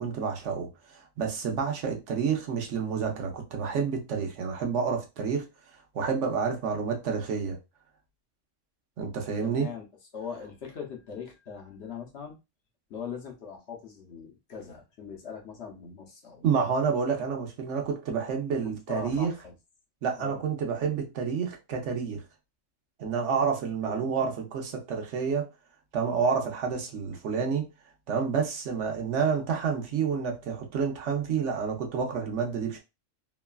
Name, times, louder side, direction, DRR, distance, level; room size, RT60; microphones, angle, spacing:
voice 1, 0.0-5.5 5.9-7.6 9.0-9.7 16.4-19.3 20.0-22.2 23.0-25.5 25.9-27.7 28.1-32.8, right 6 dB, 70° right, 1.0 m, -29 dB
voice 2, 9.4-9.8 10.1-12.4 12.9-16.7 18.9-19.5 20.2-20.4 23.8-24.3, left 6 dB, 65° left, 0.9 m, -41 dB
3.0 x 2.2 x 2.3 m
omnidirectional pair, 1.3 m